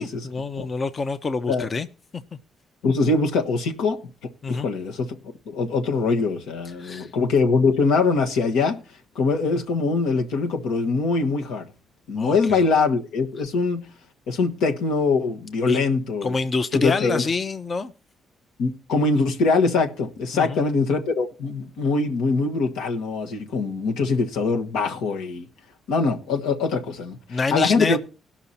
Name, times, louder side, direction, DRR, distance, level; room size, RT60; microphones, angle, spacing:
voice 1, 0.0-1.9 4.4-4.7 6.8-7.1 12.2-12.6 15.7-16.0 16.2-17.9 20.3-20.6 27.3-28.0, left 4 dB, 35° left, 0.7 m, -27 dB
voice 2, 2.8-5.2 5.5-8.8 9.1-11.7 12.1-13.8 14.3-16.3 16.7-17.2 18.6-25.5 25.9-27.2 27.5-28.0, left 4 dB, 90° left, 1.4 m, -23 dB
17.5 x 5.9 x 4.2 m
cardioid pair, 90°, 0 cm